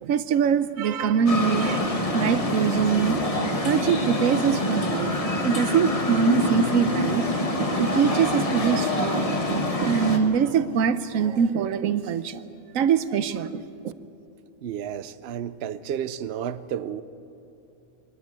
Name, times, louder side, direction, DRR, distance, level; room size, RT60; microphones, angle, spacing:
voice 1, 0.0-3.3 3.6-5.1 5.4-7.3 7.6-12.4 12.7-13.6, right 7 dB, 90° right, 1.1 m, -23 dB
sound 1, 1.3-10.2, left 2 dB, 25° left, 1.5 m, -26 dB
voice 2, 14.6-17.0, right 9 dB, 60° right, 0.8 m, -32 dB
23.0 x 13.5 x 9.6 m
omnidirectional pair, 1.3 m